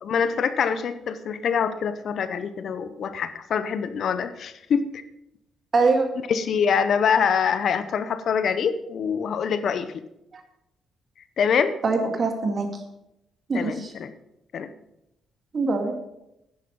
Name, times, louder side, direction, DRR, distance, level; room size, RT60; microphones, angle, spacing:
voice 1, 0.0-4.8 6.3-10.0 11.4-11.8 13.5-14.1 14.5-14.7, left 6 dB, 60° left, 12 dB, 0.8 m, -25 dB
voice 2, 5.7-6.1 10.3-10.4 11.8-12.7 13.5-13.9 15.5-15.9, right 3 dB, 40° right, 4 dB, 2.3 m, -23 dB
10.5 x 9.5 x 5.3 m, 0.85 s
cardioid pair, 90°, 0 cm